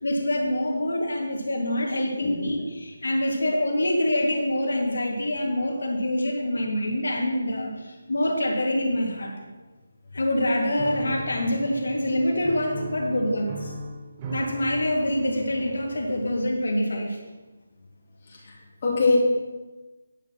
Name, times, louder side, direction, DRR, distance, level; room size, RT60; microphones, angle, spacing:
voice 1, 0.0-9.3 10.1-13.7 14.3-17.2, left 1 dB, 80° left, 0 dB, 2.1 m, -25 dB
voice 2, 2.2-2.6 18.2-19.2, left 3 dB, 30° left, -6 dB, 3.2 m, -24 dB
Piano, 10.8-16.7, right 2 dB, 20° right, 0.6 m, -39 dB
9.8 x 7.2 x 6.1 m, 1.2 s
hypercardioid pair, 175°, 0 cm